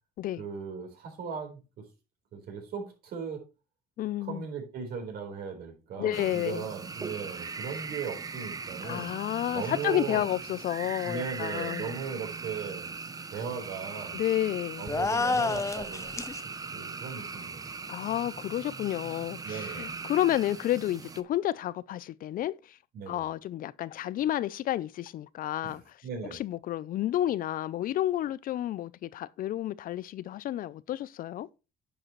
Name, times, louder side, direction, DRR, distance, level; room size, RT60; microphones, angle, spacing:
voice 1, 0.4-1.6 2.3-3.4 4.2-9.1 9.5-10.3 11.0-12.9 13.3-14.2 14.8-16.1 16.4-17.7 19.4-20.0 22.9-23.2 25.6-25.7 26.0-26.4, right 6 dB, 65° right, 4.1 m, -38 dB
voice 2, 4.0-4.5 6.0-6.7 8.8-11.9 14.1-14.9 17.9-22.8 23.1-26.0 26.3-31.5, left 13 dB, 55° left, 0.5 m, -31 dB
sound 1, 6.1-21.2, right 4 dB, 20° right, 0.7 m, -40 dB
sound 2, 14.9-16.4, left 3 dB, 15° left, 0.7 m, -28 dB
10.0 x 7.7 x 3.1 m
cardioid pair, 110°, 17 cm